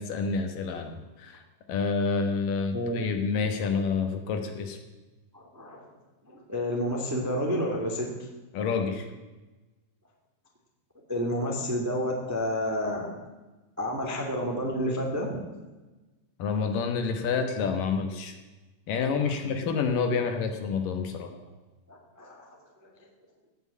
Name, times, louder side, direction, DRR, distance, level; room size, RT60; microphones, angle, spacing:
voice 1, 0.0-1.4 1.7-4.8 8.5-9.1 16.4-18.3 18.9-21.3, left 5 dB, 70° left, 6 dB, 2.6 m, -28 dB
voice 2, 5.3-5.9 6.3-8.1 11.1-13.1 13.8-15.3 21.9-22.5 22.8-22.9, equal, 10° right, 0 dB, 1.1 m, -30 dB
16.5 x 6.3 x 8.4 m, 1.2 s
omnidirectional pair, 4.4 m